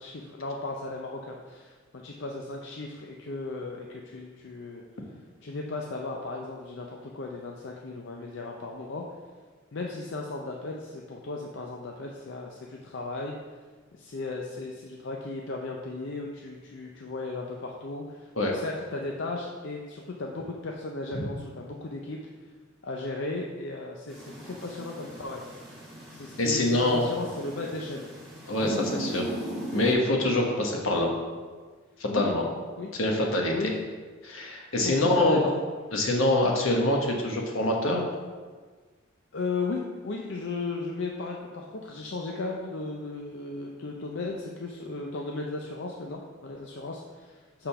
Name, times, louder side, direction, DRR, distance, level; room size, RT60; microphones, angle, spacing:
voice 1, 0.0-4.8 5.4-9.0 9.7-13.3 13.9-22.2 22.8-25.4 26.1-28.0 30.5-30.6 32.1-32.2 32.8-32.9 33.5-33.8 34.8-35.5 39.3-47.7, left 3 dB, 55° left, 0 dB, 0.5 m, -36 dB
sound 1, 24.1-29.9, right 1 dB, ahead, 1.7 m, -39 dB
voice 2, 26.4-27.0 28.5-29.2 29.7-31.1 32.0-32.4 33.0-33.5 34.2-35.4 35.9-38.0, left 1 dB, 75° left, 0 dB, 1.2 m, -25 dB
6.8 x 3.8 x 5.6 m, 1.5 s
head